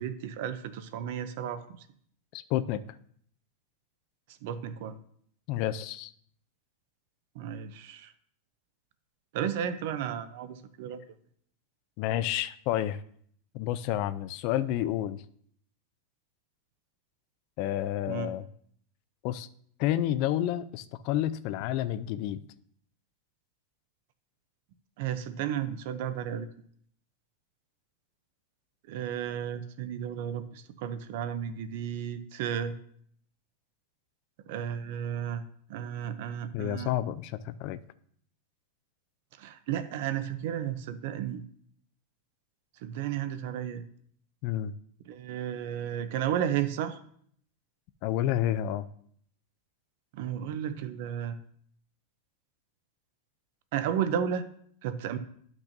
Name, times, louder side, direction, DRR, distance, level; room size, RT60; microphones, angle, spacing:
voice 1, 0.0-1.9 4.4-5.0 7.4-8.1 9.3-11.0 18.1-18.3 25.0-26.5 28.9-32.8 34.5-35.4 35.7-36.9 39.4-41.4 42.8-43.8 45.1-47.0 50.1-51.4 53.7-54.5 54.8-55.2, right 9 dB, 55° right, 12 dB, 0.6 m, -33 dB
voice 2, 2.3-2.8 5.5-6.1 12.0-13.0 13.5-15.2 17.6-18.5 19.2-19.5 19.8-22.4 36.5-37.8 44.4-44.7 48.0-48.9, left 12 dB, 45° left, 12 dB, 0.3 m, -30 dB
11.5 x 6.0 x 2.6 m, 0.63 s
supercardioid pair, 165°, 0 cm